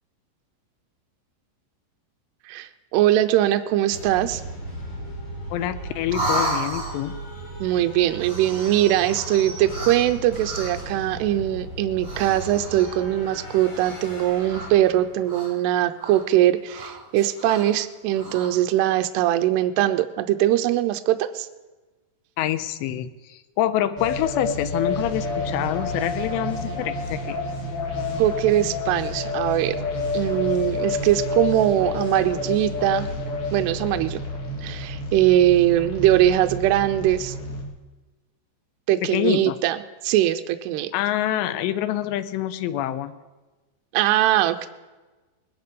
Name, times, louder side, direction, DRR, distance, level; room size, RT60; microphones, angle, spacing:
voice 1, 2.5-4.4 7.6-21.5 28.2-29.8 30.1-33.1 33.5-34.2 34.6-37.3 38.9-39.8 40.0-40.9 43.9-44.7, right 13 dB, 80° right, 8 dB, 2.7 m, -21 dB
sound 1, 3.9-15.3, right 1 dB, 40° left, 5.3 m, -37 dB
voice 2, 5.5-7.2 22.4-27.4 38.9-39.6 40.9-43.2, left 12 dB, 90° left, 10 dB, 2.9 m, -26 dB
sound 2, 6.1-7.2 8.1-11.0 11.9-13.1 13.7-14.2 14.5-15.7 16.0-16.2 16.7-17.7 18.1-18.5, right 1 dB, 15° right, 7.2 m, -33 dB
sound 3, 24.0-37.6, left 2 dB, 60° left, 3.8 m, -29 dB
20.5 x 11.0 x 5.3 m, 1.2 s
omnidirectional pair, 5.0 m